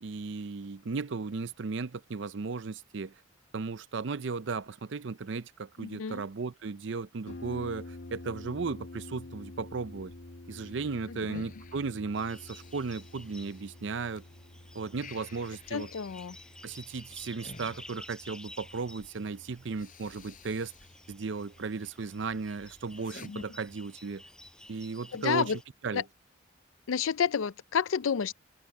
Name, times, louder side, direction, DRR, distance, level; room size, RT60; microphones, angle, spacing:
voice 1, 0.0-3.1 3.5-10.1 10.5-14.2 14.7-15.9 16.6-20.7 21.1-24.2 24.7-25.5 25.8-26.0, right 4 dB, 60° right, 0.6 m, -35 dB
voice 2, 5.8-6.2 11.1-11.4 15.7-16.4 23.3-23.4 25.1-25.6 25.9-26.0 26.9-28.3, left 7 dB, 85° left, 0.5 m, -30 dB
Harp, 7.3-24.7, left 2 dB, 60° left, 2.1 m, -50 dB
sound 1, 10.6-14.2 14.6-18.6 19.3-19.4 19.7-21.1 21.4-21.9 22.4-23.3, left 3 dB, 40° left, 7.1 m, -53 dB
sound 2, 12.1-25.6, left 1 dB, 5° left, 7.4 m, -53 dB
head